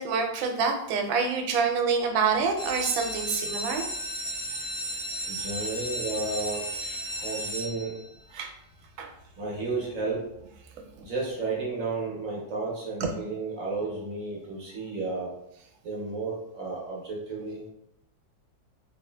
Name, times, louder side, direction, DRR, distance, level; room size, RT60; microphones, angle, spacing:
voice 1, 0.0-3.8 8.3-8.5 9.0-9.1 13.0-13.1, right 5 dB, 85° right, 4 dB, 1.4 m, -26 dB
sound 1, 2.4-8.2 8.8-9.3 9.7-9.8 10.0-10.1 10.5-10.7, equal, 70° left, 1.9 m, -34 dB
voice 2, 5.3-6.6 7.1-8.0 9.4-10.3 11.0-15.3 15.8-17.6, right 3 dB, 65° right, -4 dB, 0.8 m, -32 dB
3.9 x 2.5 x 2.2 m, 0.76 s
omnidirectional pair, 2.1 m